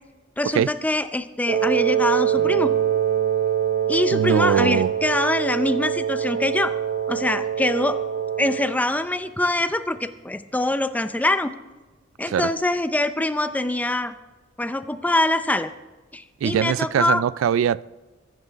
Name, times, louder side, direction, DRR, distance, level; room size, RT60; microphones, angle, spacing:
voice 1, 0.4-2.7 3.9-6.7 7.1-8.0 8.4-11.5 12.2-14.1 14.6-15.7 16.1-17.2, left 1 dB, 10° left, 0.5 m, -24 dB
Wind instrument woodwind instrument, 1.5-8.8, right 9 dB, 55° right, 1.0 m, -24 dB
sound 1, 2.3-11.4 12.9-13.4, equal, 40° right, 1.7 m, -47 dB
voice 2, 4.1-4.9 12.3-12.5 16.4-17.8, right 8 dB, 85° right, 0.3 m, -21 dB
22.5 x 10.5 x 3.5 m
head